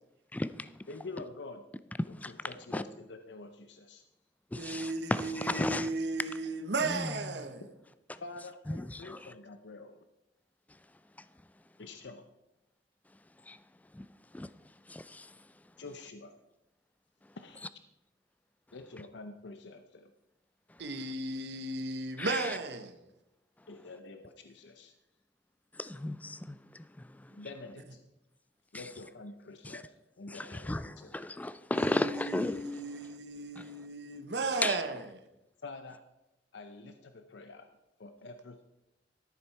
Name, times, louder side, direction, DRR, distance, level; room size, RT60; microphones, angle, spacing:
voice 1, 0.3-0.7 2.2-2.3 2.7-2.8 4.5-6.1 6.8-7.4 8.7-9.3 13.5-13.6 13.9-14.1 14.3-14.5 14.9-15.4 22.2-22.6 25.7-27.3 28.7-28.9 29.6-29.8 30.3-32.8 33.6-33.7 34.6-34.8, left 1 dB, 10° left, 0.3 m, -35 dB
voice 2, 0.9-1.6 2.2-4.0 8.2-10.0 11.8-12.3 15.8-16.3 17.4-17.6 18.7-20.1 23.7-24.9 27.4-28.0 28.7-29.8 30.2-31.1 35.6-36.0 36.5-38.6, left 3 dB, 75° left, 0.7 m, -47 dB
voice 3, 4.6-7.6 20.8-23.0 31.8-35.0, right 3 dB, 70° right, 0.9 m, -35 dB
13.0 x 7.1 x 4.5 m
head